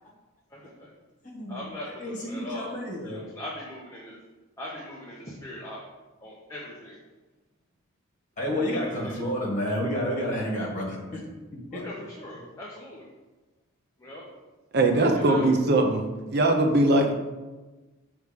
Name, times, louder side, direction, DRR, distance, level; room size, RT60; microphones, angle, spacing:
voice 1, 0.5-0.9 1.5-2.7 3.0-4.2 4.6-5.8 6.2-7.0 8.5-9.2 11.7-13.1 14.0-14.2 14.9-15.5, left 1 dB, 15° left, -5 dB, 0.8 m, -40 dB
voice 2, 1.2-1.6 2.0-3.2 8.4-11.2 11.7-11.8, equal, 35° left, -4 dB, 1.7 m, -30 dB
voice 3, 14.7-16.0 16.3-17.1, right 2 dB, 50° right, 3 dB, 0.6 m, -21 dB
6.5 x 3.2 x 5.1 m, 1.2 s
head